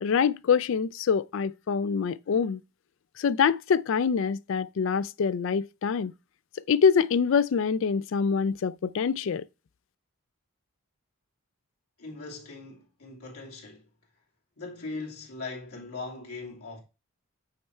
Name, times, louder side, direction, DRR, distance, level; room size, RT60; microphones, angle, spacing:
voice 1, 0.0-2.6 3.2-6.1 6.7-9.5, left 6 dB, 60° left, 0.3 m, -25 dB
voice 2, 12.0-13.9 14.6-16.8, left 3 dB, 85° left, 2.6 m, -40 dB
8.4 x 3.3 x 4.4 m
head